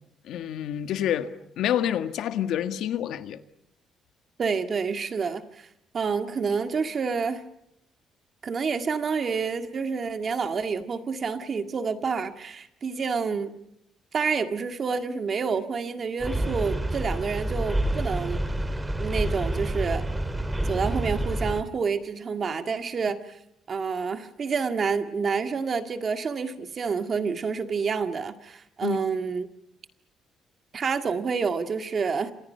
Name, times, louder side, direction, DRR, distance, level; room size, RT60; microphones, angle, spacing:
voice 1, 0.2-3.4 28.8-29.0, left 10 dB, 75° left, 1.7 m, -28 dB
voice 2, 4.4-5.7 5.9-7.4 8.4-13.5 14.1-18.4 19.0-20.0 20.6-23.4 23.7-29.5 30.7-32.3, right 5 dB, 35° right, 1.9 m, -28 dB
sound 1, 16.2-21.6, right 1 dB, 10° right, 2.2 m, -28 dB
30.0 x 27.0 x 5.7 m
cardioid pair, 145°, 0 cm